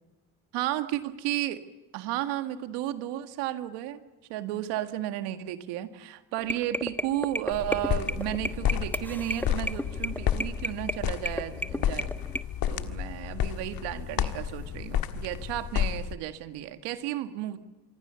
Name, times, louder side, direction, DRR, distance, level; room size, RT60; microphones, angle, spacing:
voice 1, 0.5-1.6 1.9-12.1 12.7-17.6, right 13 dB, 85° right, 9 dB, 1.9 m, -33 dB
sound 1, 6.4-12.4, equal, 5° left, 1.2 m, -33 dB
sound 2, 7.5-16.1, left 10 dB, 60° left, 1.8 m, -31 dB
26.5 x 23.5 x 7.0 m, 1.2 s
supercardioid pair, 75°, 40 cm